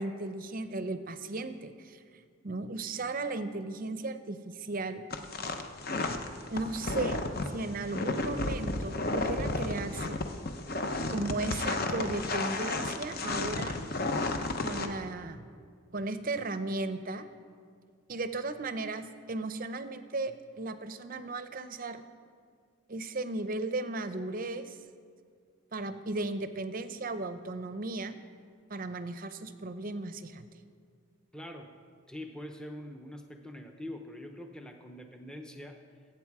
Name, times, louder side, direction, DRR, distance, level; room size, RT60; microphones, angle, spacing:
voice 1, 0.0-2.0 2.4-5.0 6.5-10.2 11.1-13.8 14.6-15.5 15.9-17.3 18.1-22.0 22.9-24.8 25.7-28.2 28.7-30.4, right 2 dB, 40° right, 11 dB, 0.6 m, -35 dB
sound 1, 5.1-14.9, left 2 dB, 45° left, 0.8 m, -32 dB
voice 2, 31.3-31.7 32.1-35.8, left 1 dB, 5° left, 4 dB, 0.7 m, -44 dB
21.5 x 8.8 x 4.8 m, 2.1 s
head